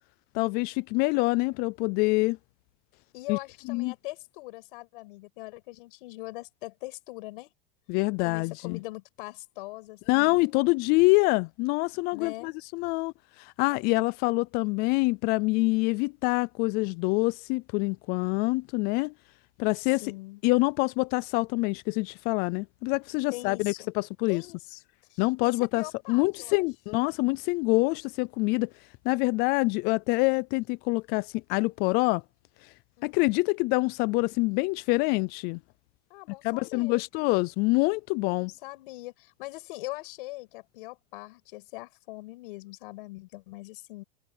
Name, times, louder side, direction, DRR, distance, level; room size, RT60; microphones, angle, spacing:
voice 1, 0.3-2.4 3.3-3.4 3.7-3.9 7.9-8.8 10.1-13.1 13.4-19.1 19.6-20.0 20.4-24.4 25.2-28.7 29.1-32.2 33.0-35.6 36.4-38.5, left 25 dB, 35° left, 0.4 m, -26 dB
voice 2, 3.1-7.5 8.2-10.7 12.1-12.5 19.8-20.4 23.3-23.9 24.3-24.8 25.1-26.6 33.0-33.5 36.1-37.0 38.3-44.0, left 22 dB, 65° left, 6.5 m, -42 dB
supercardioid pair, 150°, 29 cm